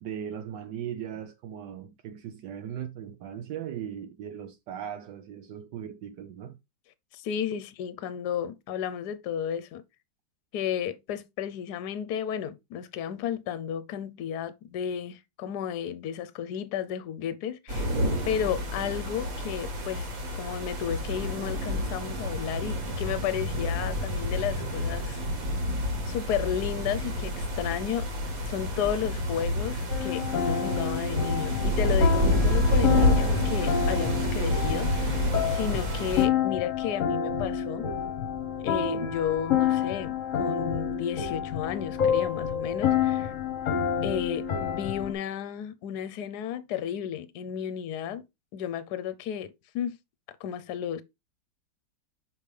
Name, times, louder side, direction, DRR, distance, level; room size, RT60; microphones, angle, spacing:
voice 1, 0.0-6.6 7.5-7.6, right 9 dB, 75° right, 1.3 m, -38 dB
voice 2, 7.1-9.8 10.5-17.9 18.3-20.1 20.3-25.2 26.1-28.1 28.4-37.9 38.6-43.3 44.0-48.3 48.5-50.0 50.4-51.0, left 9 dB, 70° left, 1.2 m, -33 dB
sound 1, 17.7-36.3, left 1 dB, 50° right, 1.8 m, -28 dB
sound 2, 29.9-45.1, left 8 dB, 50° left, 1.2 m, -29 dB
5.7 x 5.2 x 3.2 m
omnidirectional pair, 1.9 m